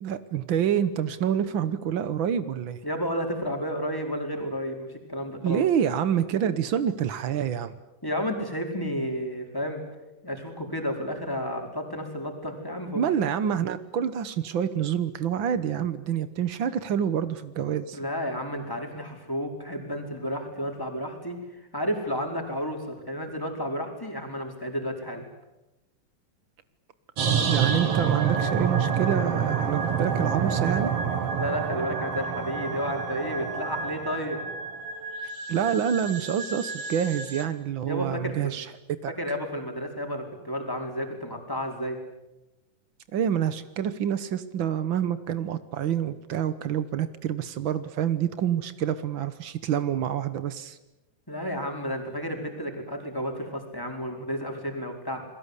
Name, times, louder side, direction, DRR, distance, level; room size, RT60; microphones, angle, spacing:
voice 1, 0.0-2.8 5.4-7.7 12.9-18.0 27.5-30.9 35.5-38.7 39.0-39.1 43.1-50.8, right 9 dB, 90° right, 12 dB, 1.0 m, -27 dB
voice 2, 2.8-5.7 8.0-9.8 10.2-13.0 17.9-21.4 21.7-25.3 31.3-34.4 37.8-38.6 39.1-42.0 51.3-55.3, equal, 5° left, 2 dB, 4.5 m, -32 dB
sound 1, 27.2-37.5, right 6 dB, 50° right, 2.8 m, -28 dB
29.5 x 22.0 x 8.3 m, 0.97 s
omnidirectional pair, 3.8 m